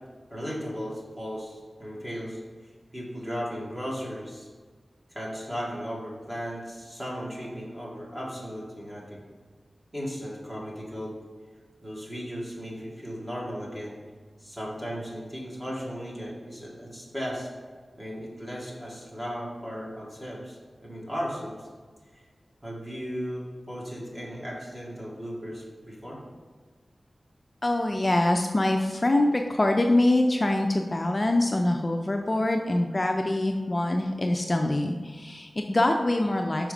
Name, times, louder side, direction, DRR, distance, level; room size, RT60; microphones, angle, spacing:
voice 1, 0.3-2.4 2.9-4.5 5.1-9.2 9.9-11.2 11.8-14.0 14.4-17.5 18.0-21.7 22.1-22.2 22.6-26.2, equal, 15° right, -5 dB, 2.1 m, -36 dB
voice 2, 27.6-36.7, left 1 dB, 35° left, 3 dB, 0.4 m, -24 dB
6.1 x 4.7 x 5.1 m, 1.5 s
wide cardioid pair, 90°, 0 cm